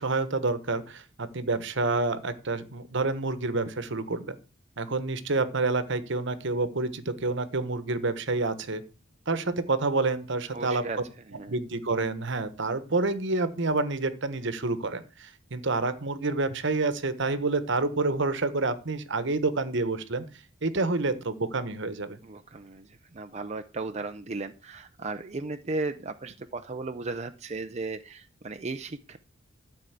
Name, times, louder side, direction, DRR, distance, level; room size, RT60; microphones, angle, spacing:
voice 1, 0.0-4.4 4.8-8.8 9.3-10.8 11.5-20.2 20.6-22.2, right 3 dB, 65° right, 13 dB, 1.2 m, -28 dB
voice 2, 10.5-11.0 11.3-11.6 22.2-29.2, right 3 dB, 35° right, 8 dB, 0.6 m, -36 dB
12.5 x 5.4 x 8.1 m, 0.35 s
head